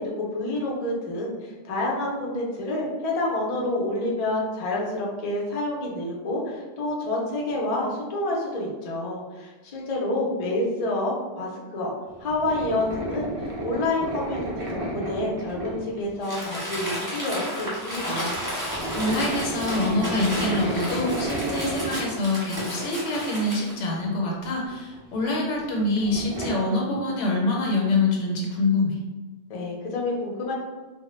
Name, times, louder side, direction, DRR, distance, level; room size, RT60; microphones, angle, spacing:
voice 1, 0.0-11.9 12.2-18.4 29.5-30.5, left 2 dB, 50° left, -3 dB, 0.4 m, -28 dB
sound 1, 12.1-16.9 17.1-17.4 17.6-22.8 23.2-23.3 24.3-26.5, right 1 dB, 55° right, 0.4 m, -33 dB
Crumpling crinkling, 16.2-23.8, equal, 5° right, 0.9 m, -33 dB
voice 2, 18.9-29.0, left 2 dB, 80° left, -1 dB, 0.9 m, -25 dB
2.1 x 2.0 x 3.0 m, 1.2 s
omnidirectional pair, 1.2 m